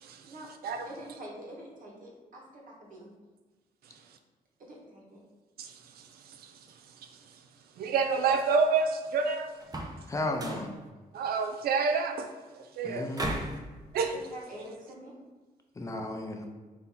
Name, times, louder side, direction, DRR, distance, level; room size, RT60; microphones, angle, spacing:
voice 1, 0.9-3.1 4.6-5.2 14.0-15.1, right 1 dB, 60° right, -2 dB, 1.2 m, -46 dB
voice 2, 7.8-9.5 11.1-12.3 12.6-13.1 13.9-14.1, right 5 dB, 85° right, 6 dB, 0.4 m, -28 dB
sound 1, 9.6-10.0 10.3-10.7 13.1-13.6, right 1 dB, 25° right, 0.6 m, -35 dB
voice 3, 10.1-10.7 12.8-13.4 15.8-16.5, left 1 dB, 20° left, 3 dB, 0.5 m, -34 dB
4.1 x 2.8 x 3.8 m, 1.3 s
cardioid pair, 105°, 15 cm